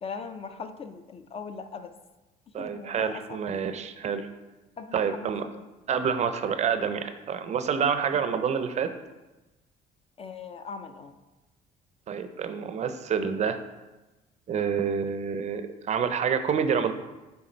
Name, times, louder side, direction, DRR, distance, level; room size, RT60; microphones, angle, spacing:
voice 1, 0.0-1.9 2.6-3.4 4.8-5.7 8.1-8.2 10.2-11.1, left 5 dB, 35° left, 9 dB, 0.4 m, -40 dB
voice 2, 2.5-4.3 4.9-5.5 5.9-8.9 12.1-13.6 14.5-16.9, right 7 dB, 40° right, 10 dB, 0.4 m, -28 dB
6.4 x 3.5 x 4.3 m, 1.1 s
cardioid pair, 110°, 17 cm